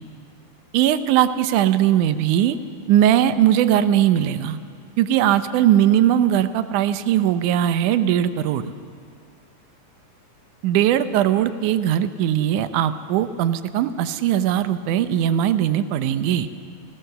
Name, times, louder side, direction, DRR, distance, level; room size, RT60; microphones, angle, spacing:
voice 1, 0.7-2.6 2.9-4.6 5.0-8.7 10.6-16.5, right 11 dB, 75° right, 11 dB, 2.2 m, -19 dB
29.0 x 16.0 x 6.8 m, 2.2 s
omnidirectional pair, 3.9 m